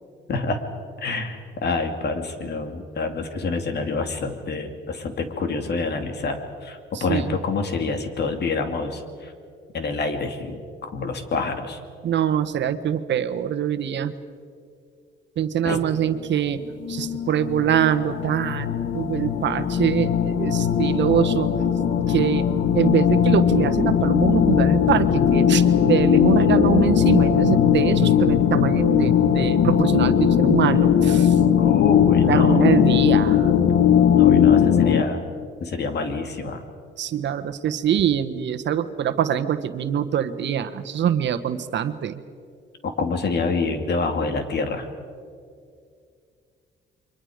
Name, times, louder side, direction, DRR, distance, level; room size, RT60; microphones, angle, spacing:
voice 1, 0.3-0.6 1.0-9.3 9.7-11.8 15.6-15.8 31.6-32.7 34.1-35.3 35.6-36.6 42.8-44.9, left 4 dB, 55° left, 6 dB, 2.7 m, -27 dB
voice 2, 6.9-7.4 12.0-14.1 15.4-16.6 16.9-21.5 22.1-22.5 22.7-31.4 32.2-33.5 37.0-42.2, right 9 dB, 65° right, 9 dB, 1.3 m, -24 dB
sound 1, 16.6-35.0, left 8 dB, 75° left, 1.4 m, -19 dB
29.0 x 24.0 x 5.1 m, 2.3 s
cardioid pair, 90°, 20 cm